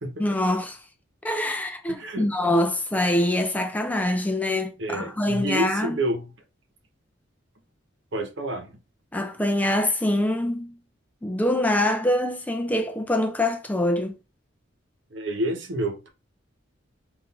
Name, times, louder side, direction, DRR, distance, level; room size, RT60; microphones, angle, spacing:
voice 1, 0.2-0.8 1.2-6.0 9.1-10.8 11.2-14.2, left 1 dB, 10° left, 0.4 m, -24 dB
voice 2, 1.9-2.3 4.8-6.3 8.1-8.8 15.1-16.1, right 1 dB, 70° right, 1.0 m, -29 dB
3.9 x 2.6 x 4.0 m
head